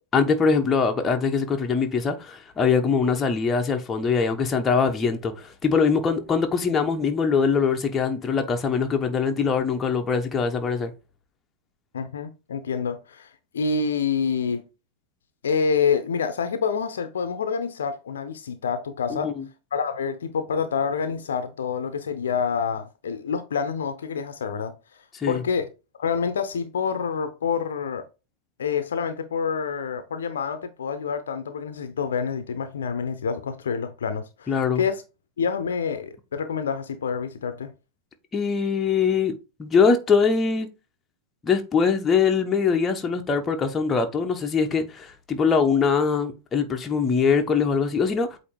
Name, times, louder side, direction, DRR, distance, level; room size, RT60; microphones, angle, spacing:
voice 1, 0.1-10.9 19.1-19.4 25.1-25.4 34.5-34.8 38.3-40.7 41.4-48.4, left 5 dB, 20° left, 1.0 m, -22 dB
voice 2, 11.9-14.6 15.4-19.3 19.7-24.7 25.3-25.7 26.0-28.0 28.6-35.0 35.4-37.7, left 6 dB, 65° left, 0.8 m, -27 dB
8.3 x 2.8 x 4.5 m
figure-of-eight pair, 90°, 0 cm